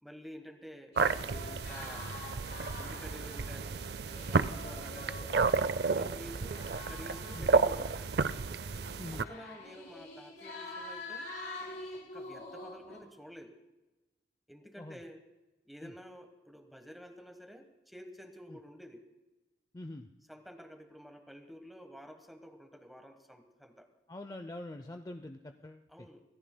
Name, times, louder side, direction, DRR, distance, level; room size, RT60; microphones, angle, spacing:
voice 1, 0.0-2.1 2.7-3.9 4.3-8.1 9.1-11.3 11.9-13.5 14.5-15.2 15.7-19.0 20.3-23.9 25.9-26.2, equal, ahead, 5 dB, 1.2 m, -50 dB
sound 1, 0.9-3.7 4.0-8.0 8.8-13.0, left 2 dB, 60° left, 4.2 m, -46 dB
sound 2, 1.0-9.2, right 4 dB, 60° right, 0.4 m, -32 dB
voice 2, 9.0-9.3 14.8-15.0 15.8-15.9 18.5-18.6 19.7-20.1 24.1-26.1, left 1 dB, 20° left, 7 dB, 0.4 m, -44 dB
25.0 x 18.0 x 2.2 m, 1.1 s
head